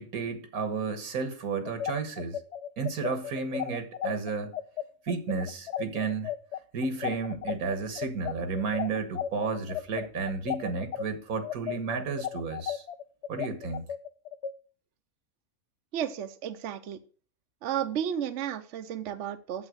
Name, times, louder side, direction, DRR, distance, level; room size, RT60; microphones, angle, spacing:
voice 1, 0.0-2.4 2.8-4.5 5.1-6.3 6.7-12.9 13.3-13.9, right 4 dB, 85° right, 1.8 m, -32 dB
sound 1, 1.7-11.1 11.4-14.5, left 9 dB, 65° left, 0.7 m, -34 dB
voice 2, 15.9-17.0 17.6-19.7, right 9 dB, 60° right, 0.9 m, -33 dB
8.1 x 7.3 x 6.2 m
omnidirectional pair, 1.5 m